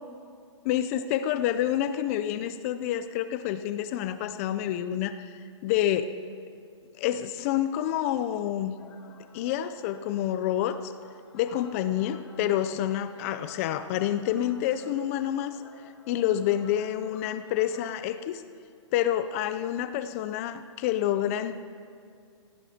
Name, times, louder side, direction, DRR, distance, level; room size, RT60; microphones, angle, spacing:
voice 1, 0.7-5.3 5.6-6.1 7.0-8.8 9.3-10.9 11.3-15.6 16.1-18.4 18.9-21.5, left 11 dB, 30° left, 11 dB, 0.4 m, -28 dB
sound 1, 8.8-17.9, left 4 dB, 60° left, 1.9 m, -53 dB
18.0 x 16.0 x 2.8 m, 2.3 s
hypercardioid pair, 140°, 16 cm